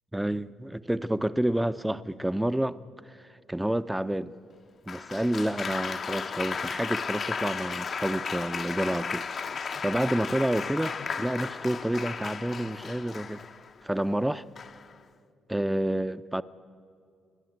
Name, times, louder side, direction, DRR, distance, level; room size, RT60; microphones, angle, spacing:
voice 1, 0.1-2.8 3.1-3.2 3.5-4.3 4.9-9.3 9.8-13.4 13.8-14.4 15.5-16.4, right 1 dB, 5° right, 0.5 m, -29 dB
Applause, 4.9-13.7 14.6-15.0, left 5 dB, 50° left, 0.7 m, -34 dB
30.0 x 10.5 x 8.1 m
cardioid pair, 90°, 0 cm